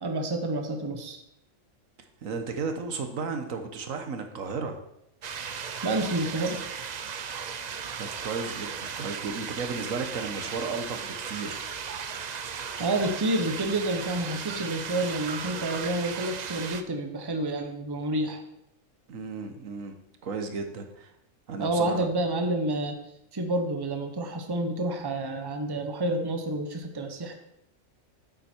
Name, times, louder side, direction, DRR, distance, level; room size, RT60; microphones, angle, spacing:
voice 1, 0.0-1.2 5.8-6.6 12.8-18.4 21.6-23.0 23.3-27.3, right 1 dB, 20° right, 5 dB, 0.9 m, -29 dB
voice 2, 2.2-4.8 8.0-11.6 19.1-20.0 20.2-21.1 21.5-22.1, right 4 dB, 75° right, 6 dB, 1.5 m, -34 dB
sound 1, 5.2-16.8, right 6 dB, 55° right, 0.5 m, -36 dB
8.9 x 8.1 x 4.5 m, 0.81 s
omnidirectional pair, 1.4 m